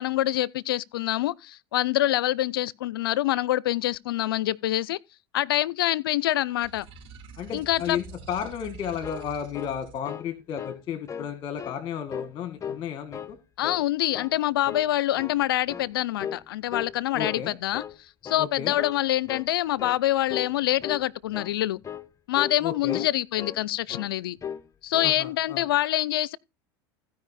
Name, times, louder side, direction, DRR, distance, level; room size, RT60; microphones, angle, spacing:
voice 1, 0.0-5.0 5.3-6.9 7.5-8.0 13.6-17.8 18.2-21.8 22.3-24.4 24.8-26.4, left 14 dB, 85° left, 0.5 m, -26 dB
sound 1, 6.6-10.0, right 4 dB, 55° right, 4.1 m, -46 dB
voice 2, 7.4-13.4 17.1-17.6 18.4-18.8 22.6-23.0 25.0-25.6, left 8 dB, 45° left, 1.6 m, -33 dB
sound 2, 8.8-10.3 10.6-10.8 11.1-11.8 12.1-12.8 13.1-13.9 14.1-14.4 14.7-15.4 15.7-15.9 16.2-16.5 16.7-17.5 17.7-18.0 18.2-18.5 18.8-19.0 19.3-19.5 19.8-20.0 20.3-20.5 20.8-21.0 21.3-21.5 21.8-22.1 22.3-22.6 22.9-23.6 23.9-24.1 24.4-24.7 24.9-25.2, left 8 dB, 25° left, 0.9 m, -37 dB
15.5 x 5.2 x 4.2 m
hypercardioid pair, 90°, 12 cm